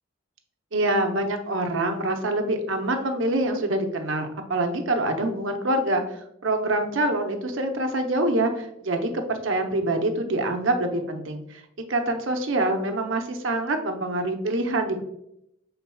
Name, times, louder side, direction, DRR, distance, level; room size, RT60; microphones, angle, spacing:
voice 1, 0.7-6.0 6.4-11.6 11.9-15.0, right 1 dB, 70° right, 5 dB, 0.7 m, -25 dB
5.6 x 3.8 x 2.3 m, 0.79 s
head